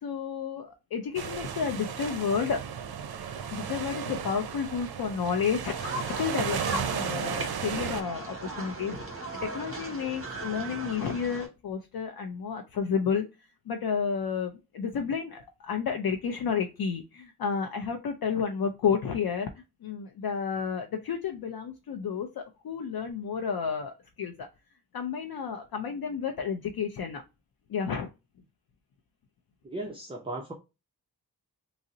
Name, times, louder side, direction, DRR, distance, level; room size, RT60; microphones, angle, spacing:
voice 1, 0.0-2.6 3.5-9.0 9.4-13.2 13.7-19.5 19.8-24.5 24.9-27.2 27.7-28.1, left 6 dB, 70° left, 0.5 m, -31 dB
sound 1, 1.2-8.0, right 7 dB, 70° right, 0.5 m, -34 dB
sound 2, 5.7-11.5, right 2 dB, 35° right, 1.2 m, -37 dB
voice 2, 29.6-30.5, right 2 dB, 15° right, 0.4 m, -36 dB
3.7 x 2.0 x 2.6 m
wide cardioid pair, 120°, 38 cm